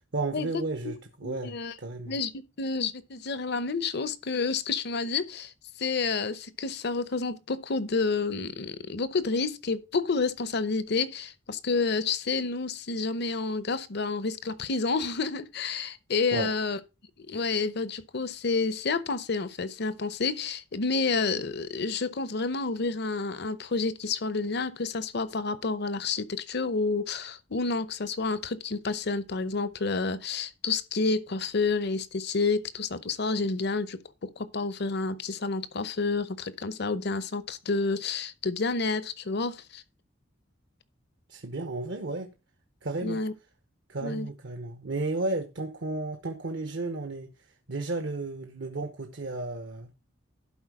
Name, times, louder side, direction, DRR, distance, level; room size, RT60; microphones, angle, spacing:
voice 1, 0.1-2.2 16.3-16.5 41.3-42.3 42.8-43.2 43.9-47.3 47.7-49.9, right 2 dB, 65° right, 0.9 m, -33 dB
voice 2, 1.2-1.7 2.1-2.3 2.6-5.5 5.8-16.8 17.3-39.8 43.0-43.3 44.0-44.3, left 4 dB, 55° left, 0.7 m, -29 dB
11.5 x 4.6 x 4.8 m
head